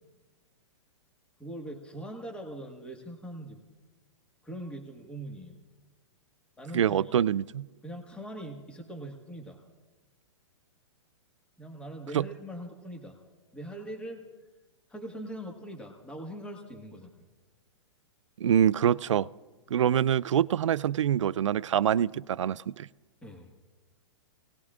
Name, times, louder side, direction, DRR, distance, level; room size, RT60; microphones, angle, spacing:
voice 1, 1.4-3.6 4.4-5.6 6.6-7.2 7.8-9.6 11.6-13.2 13.5-14.2 14.9-17.1 23.2-23.5, right 1 dB, 5° left, 1 dB, 1.7 m, -41 dB
voice 2, 6.7-7.7 12.1-12.2 18.4-19.3 19.7-22.9, right 9 dB, 85° right, 19 dB, 0.4 m, -25 dB
28.5 x 18.5 x 2.5 m, 1.2 s
hypercardioid pair, 130°, 15 cm